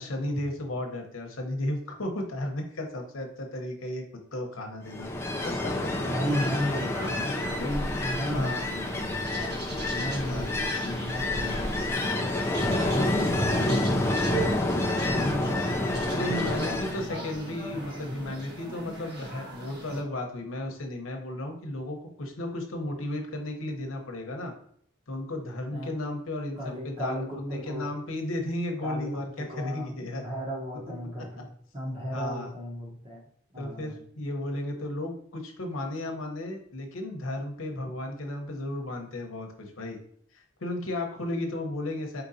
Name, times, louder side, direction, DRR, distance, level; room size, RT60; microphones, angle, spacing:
voice 1, 0.0-4.0 4.3-5.1 5.4-5.9 6.7-7.1 7.6-7.7 8.3-8.6 10.2-10.5 16.1-24.5 25.1-30.2 32.1-32.5 33.6-40.0 40.3-42.2, left 1 dB, 80° left, 3 dB, 0.9 m, -34 dB
Ocean, 4.9-17.1, left 1 dB, 10° left, 0.4 m, -28 dB
voice 2, 6.1-9.6 9.9-12.3 12.6-14.7 15.1-17.6 25.7-25.9 26.6-27.9 28.8-33.2 33.5-34.0 37.8-37.9, equal, 25° right, -1 dB, 1.0 m, -35 dB
sound 1, 6.3-20.0, right 2 dB, 55° right, 1.1 m, -40 dB
4.5 x 3.9 x 2.7 m, 0.65 s
head